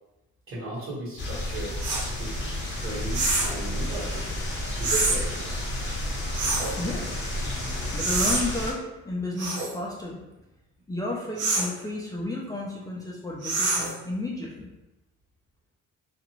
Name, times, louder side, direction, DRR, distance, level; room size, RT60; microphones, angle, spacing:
voice 1, 0.5-1.7 2.2-2.3 2.7-4.2 4.8-5.3, right 2 dB, 45° right, -8 dB, 1.3 m, -35 dB
sound 1, 1.2-8.7, left 1 dB, 40° left, 1.0 m, -31 dB
sound 2, 1.8-2.1 3.1-3.6 4.8-5.2 6.3-6.8 8.0-8.4 9.4-9.7 11.4-11.7 13.4-14.0, right 3 dB, 90° right, 0.7 m, -26 dB
voice 2, 6.8-7.2 7.9-10.3 10.9-14.7, left 2 dB, 10° left, -5 dB, 0.5 m, -32 dB
2.5 x 2.4 x 3.0 m, 0.98 s
cardioid pair, 90°, 30 cm